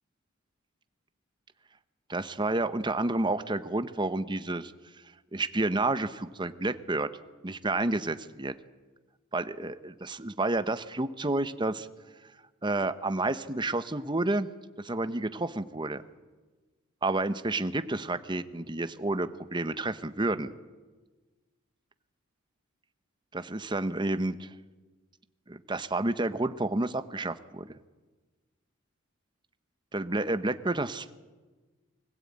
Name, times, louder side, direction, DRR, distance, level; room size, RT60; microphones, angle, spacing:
voice 1, 2.1-4.7 5.3-7.1 7.4-8.5 9.3-11.9 12.6-14.5 14.8-16.0 17.0-20.5 23.3-24.5 25.5-27.7 29.9-31.1, right 2 dB, 20° right, 11 dB, 0.9 m, -30 dB
24.5 x 16.5 x 8.8 m, 1.3 s
head